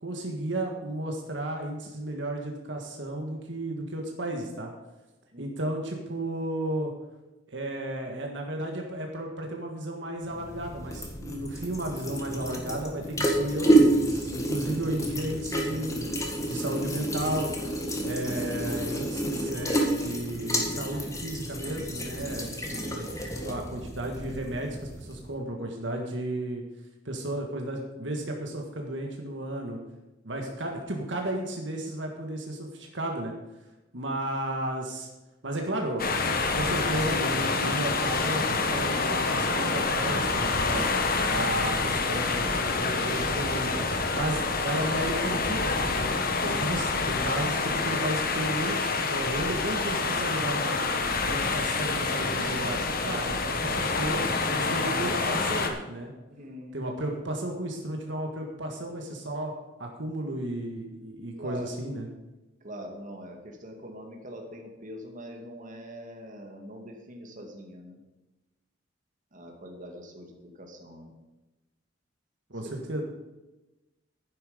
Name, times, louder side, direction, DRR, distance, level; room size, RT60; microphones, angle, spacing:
voice 1, 0.0-4.7 5.4-6.9 7.5-16.0 16.5-17.5 18.0-23.1 23.4-26.6 27.1-29.8 30.2-33.3 33.9-35.1 35.4-40.9 41.3-43.9 44.1-46.1 46.4-50.9 51.2-54.2 54.5-56.1 56.7-59.5 59.8-62.1 72.5-73.0, right 1 dB, 70° right, 2 dB, 1.7 m, -33 dB
sound 1, 10.3-25.3, right 1 dB, 15° left, 2.0 m, -29 dB
sound 2, 36.0-55.7, left 3 dB, 50° left, 1.4 m, -27 dB
voice 2, 51.3-51.7 56.3-56.8 61.4-61.7 62.6-68.0 69.3-71.1 72.6-72.7, equal, 45° right, 2 dB, 2.1 m, -43 dB
11.5 x 10.0 x 5.1 m, 1.1 s
head